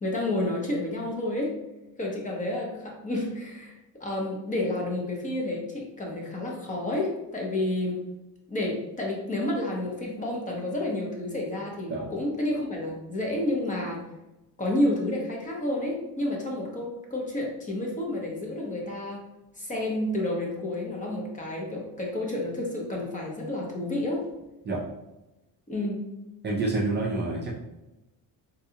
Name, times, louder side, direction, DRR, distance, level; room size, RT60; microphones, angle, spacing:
voice 1, 0.0-1.6 2.0-8.0 8.5-14.0 14.6-19.2 19.6-24.3 25.7-26.1, left 1 dB, 20° left, -1 dB, 0.7 m, -30 dB
voice 2, 26.4-27.5, right 2 dB, 25° right, -3 dB, 0.4 m, -27 dB
3.8 x 2.3 x 2.7 m, 1.0 s
cardioid pair, 130°, 41 cm